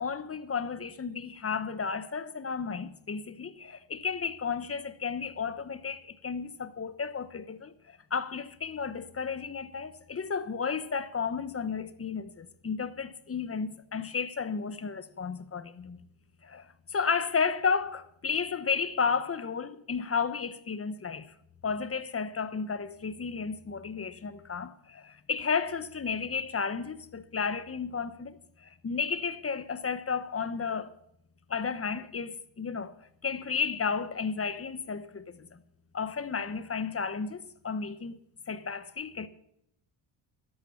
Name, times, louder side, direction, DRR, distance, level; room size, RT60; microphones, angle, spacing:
voice 1, 0.0-16.0 16.4-21.3 21.6-30.9 31.5-33.0 33.2-35.6 35.9-38.2 38.5-39.3, left 5 dB, 30° left, 1.1 m, -33 dB
12.5 x 11.5 x 7.1 m
cardioid pair, 100°, 48 cm